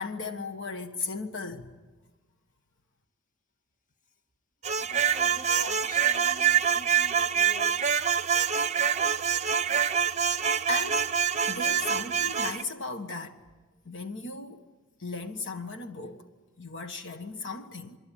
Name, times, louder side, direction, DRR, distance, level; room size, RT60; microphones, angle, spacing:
voice 1, 0.0-1.7 10.7-11.1 11.5-13.4 13.8-14.6 15.0-16.2 16.6-18.0, left 3 dB, 60° left, 1.6 m, -36 dB
sound 1, 4.6-12.6, right 8 dB, 30° right, 0.8 m, -25 dB
voice 2, 4.8-8.1, left 3 dB, 40° left, 1.8 m, -46 dB
28.0 x 23.0 x 9.2 m
head